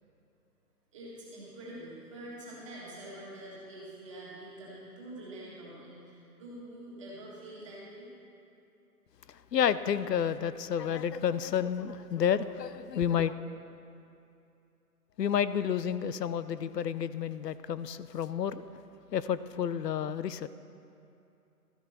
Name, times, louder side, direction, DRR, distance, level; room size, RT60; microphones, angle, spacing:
voice 1, 0.9-8.1, right 1 dB, 20° right, -7 dB, 2.0 m, -46 dB
voice 2, 9.5-13.3 15.2-18.6 19.1-20.5, left 8 dB, 85° left, 14 dB, 0.7 m, -30 dB
13.5 x 10.0 x 4.3 m, 2.7 s
hypercardioid pair, 175°, 48 cm